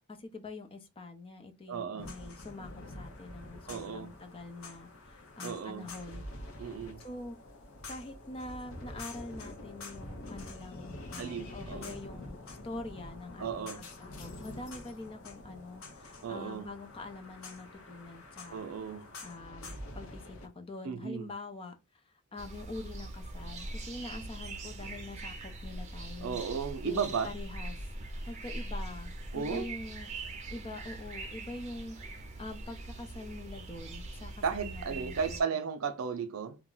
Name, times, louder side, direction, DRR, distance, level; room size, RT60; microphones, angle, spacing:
voice 1, 0.1-2.7 3.0-6.2 7.0-7.4 7.9-18.7 19.2-21.7 22.3-26.4 26.8-27.8 28.3-30.1 30.5-32.0 32.4-35.6, left 2 dB, 25° left, 0.4 m, -45 dB
voice 2, 1.7-2.1 3.7-4.1 5.4-5.9 6.6-7.0 11.2-12.0 13.4-13.8 16.2-16.7 18.5-19.1 20.8-21.3 26.2-27.3 29.3-29.7 34.4-36.6, right 6 dB, 75° right, 0.4 m, -35 dB
sound 1, 2.0-20.5, left 2 dB, 70° left, 0.6 m, -46 dB
sound 2, 22.4-35.4, right 2 dB, 35° right, 0.6 m, -42 dB
2.3 x 2.0 x 3.7 m
head